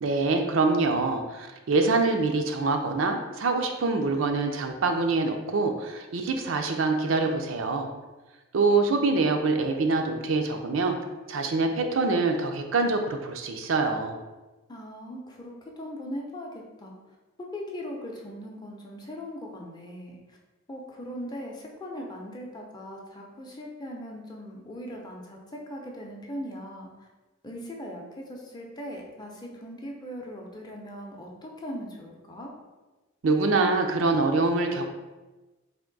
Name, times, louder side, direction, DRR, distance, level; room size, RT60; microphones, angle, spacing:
voice 1, 0.0-7.9 8.5-11.0 11.3-14.2 33.2-34.9, right 3 dB, 80° right, 4 dB, 0.5 m, -25 dB
voice 2, 14.7-17.0 17.5-20.2 20.7-27.1 27.4-32.5, equal, 20° left, 0 dB, 0.5 m, -39 dB
3.5 x 2.6 x 3.8 m, 1.2 s
head